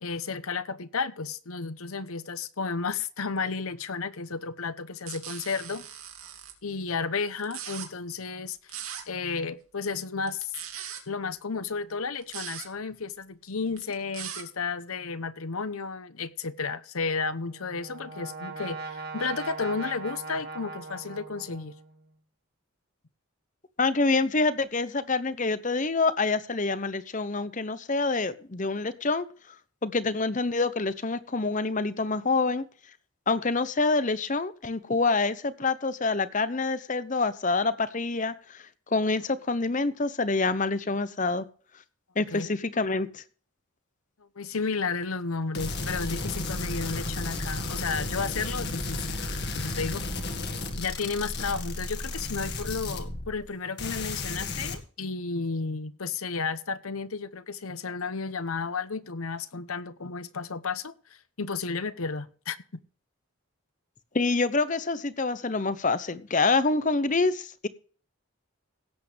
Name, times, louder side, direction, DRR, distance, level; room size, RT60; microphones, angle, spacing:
voice 1, 0.0-5.9 6.6-8.8 9.1-10.5 11.1-21.7 42.3-42.6 44.4-49.2 49.6-50.3 50.8-62.6, left 4 dB, 80° left, 0.9 m, -33 dB
sound 1, 5.1-6.5 7.4-7.9 8.7-9.0 10.2-11.0 12.2-12.7 13.7-14.4, right 9 dB, 80° right, 3.0 m, -39 dB
Brass instrument, 17.3-22.0, right 3 dB, 45° right, 1.5 m, -40 dB
voice 2, 23.8-29.3 29.8-32.6 33.3-38.3 38.9-41.4 42.2-43.1 64.1-67.7, left 3 dB, 35° left, 0.8 m, -26 dB
sound 2, 45.5-53.5 53.8-54.8, left 2 dB, 50° left, 2.0 m, -33 dB
17.0 x 8.4 x 3.4 m
head